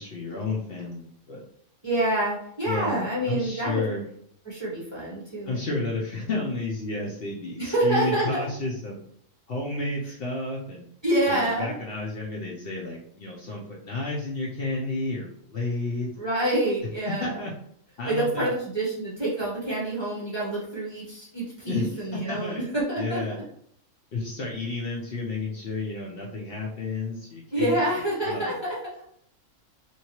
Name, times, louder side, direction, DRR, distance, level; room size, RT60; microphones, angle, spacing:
voice 1, 0.0-1.4 2.7-4.0 5.5-9.0 9.5-10.8 11.3-16.1 17.2-17.5 18.0-18.5 21.7-22.6 23.0-23.4 24.1-27.8 28.2-28.5, left 2 dB, 55° left, -3 dB, 0.7 m, -31 dB
voice 2, 1.8-3.8 4.4-5.6 7.6-8.4 11.0-11.7 16.2-17.4 18.0-23.4 27.5-28.8, right 1 dB, 25° right, -7 dB, 0.7 m, -27 dB
2.9 x 2.7 x 2.9 m, 0.68 s
omnidirectional pair, 1.3 m